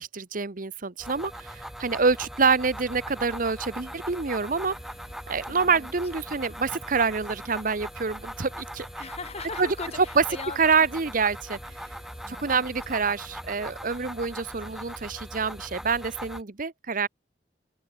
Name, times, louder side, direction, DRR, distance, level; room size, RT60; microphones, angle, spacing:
voice 1, 0.0-4.8 5.3-9.1 9.6-9.7 10.2-10.3 10.6-11.6 12.3-17.1, right 5 dB, 50° right, 1.0 m, -26 dB
sound 1, 1.0-16.4, equal, ahead, 2.4 m, -40 dB
sound 2, 2.6-13.4, left 1 dB, 80° left, 3.3 m, -54 dB
voice 2, 5.5-5.9 9.0-10.6 12.2-12.6, left 4 dB, 35° left, 1.7 m, -39 dB
head